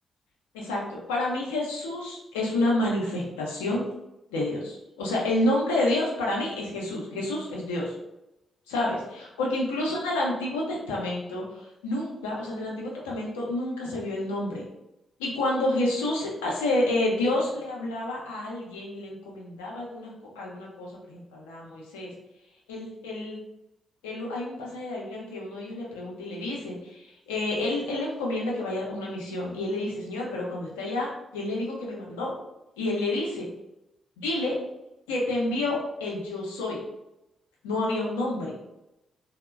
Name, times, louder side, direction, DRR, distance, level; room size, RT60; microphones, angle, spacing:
voice 1, 0.5-3.8 4.3-8.0 8.7-14.6 15.2-22.1 22.7-23.4 24.0-32.3 32.8-33.5 34.2-34.6 35.1-36.8 37.6-38.5, left 1 dB, 90° left, -2 dB, 0.5 m, -29 dB
2.8 x 2.0 x 2.2 m, 0.89 s
hypercardioid pair, 40°, 0 cm